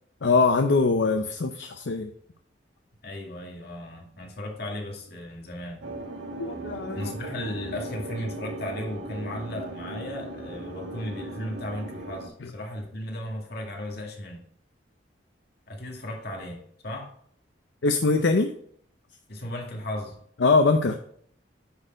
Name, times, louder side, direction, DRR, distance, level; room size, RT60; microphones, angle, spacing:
voice 1, 0.2-2.1 6.4-7.1 12.4-12.5 17.8-18.5 20.4-20.9, left 3 dB, 80° left, 6 dB, 0.6 m, -22 dB
voice 2, 3.0-5.9 6.9-14.4 15.7-17.1 19.3-20.2, left 1 dB, 60° left, 0 dB, 2.2 m, -35 dB
sound 1, 5.8-12.3, right 2 dB, 85° right, 1.3 m, -38 dB
9.4 x 4.4 x 5.1 m, 0.64 s
head